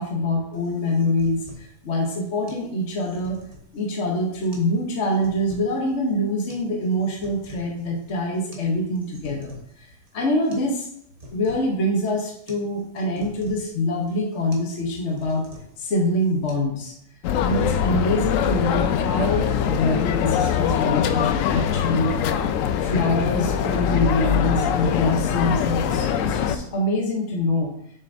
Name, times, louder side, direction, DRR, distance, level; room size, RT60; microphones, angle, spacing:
voice 1, 0.0-3.4 3.7-9.9 10.1-10.9 11.3-15.5 15.8-16.9 17.4-22.1 22.8-27.7, left 1 dB, 50° left, -1 dB, 1.3 m, -25 dB
sound 1, 0.5-16.5, right 1 dB, 25° right, 1.3 m, -47 dB
sound 2, 17.2-26.6, left 8 dB, 70° left, 0.8 m, -23 dB
6.9 x 6.6 x 2.7 m, 0.73 s
omnidirectional pair, 1.7 m